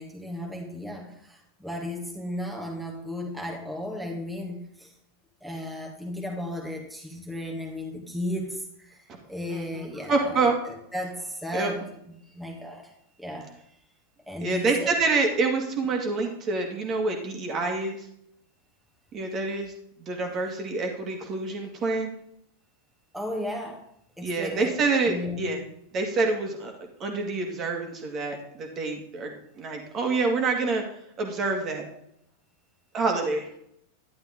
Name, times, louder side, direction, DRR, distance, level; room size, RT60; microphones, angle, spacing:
voice 1, 0.0-4.9 5.4-10.4 10.7-11.8 12.3-13.6 14.3-14.9 23.1-23.8 24.2-24.7 25.1-25.5, left 1 dB, ahead, 0 dB, 1.9 m, -35 dB
voice 2, 9.5-10.5 11.5-11.7 14.4-18.1 19.1-19.7 20.0-22.1 24.2-25.6 25.9-26.7 27.0-30.8 31.2-31.9 32.9-33.5, right 3 dB, 30° right, 3 dB, 2.1 m, -27 dB
11.0 x 11.0 x 3.7 m, 0.73 s
figure-of-eight pair, 90°, 0 cm